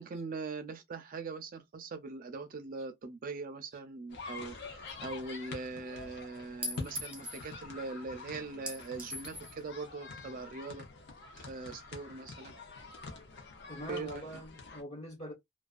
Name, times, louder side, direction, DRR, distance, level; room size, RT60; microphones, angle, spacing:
voice 1, 0.0-10.9 11.3-12.5 13.9-14.4, right 3 dB, 45° right, 0.4 m, -41 dB
sound 1, 4.1-14.8, left 4 dB, 60° left, 0.7 m, -47 dB
Chink clink, 4.9-5.0 6.6-7.4 8.7-9.5, equal, 5° right, 0.7 m, -40 dB
voice 2, 13.7-15.3, equal, 35° left, 1.2 m, -43 dB
2.3 x 2.3 x 2.4 m
head